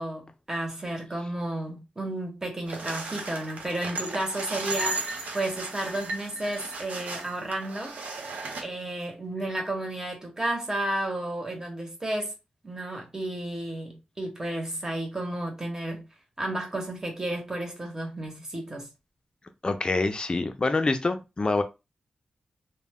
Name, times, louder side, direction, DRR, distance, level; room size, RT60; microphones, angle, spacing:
voice 1, 0.0-8.0 8.6-12.3 12.6-16.0 16.4-18.9, right 1 dB, 20° right, 1.0 m, -32 dB
sound 1, 2.7-8.6, right 3 dB, 85° right, 0.6 m, -35 dB
voice 2, 19.6-21.6, left 3 dB, 35° left, 0.5 m, -26 dB
2.2 x 2.1 x 3.5 m
cardioid pair, 70°, 3 cm